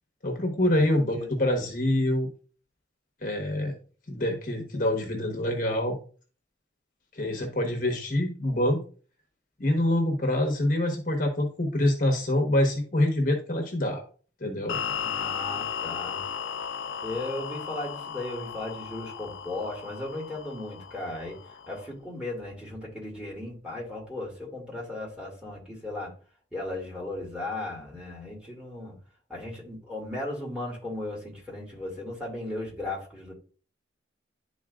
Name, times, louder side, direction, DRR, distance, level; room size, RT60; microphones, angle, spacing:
voice 1, 0.2-2.3 3.2-3.7 4.1-6.0 7.1-8.8 9.6-14.0 14.4-14.8, left 1 dB, 45° left, 2 dB, 1.1 m, -25 dB
sound 1, 14.7-21.9, left 7 dB, 90° left, 0.5 m, -35 dB
voice 2, 15.0-16.2 17.0-21.4 21.7-26.1 26.5-29.0 29.3-33.3, left 2 dB, 5° right, -5 dB, 2.3 m, -36 dB
11.0 x 4.0 x 2.4 m, 0.39 s
head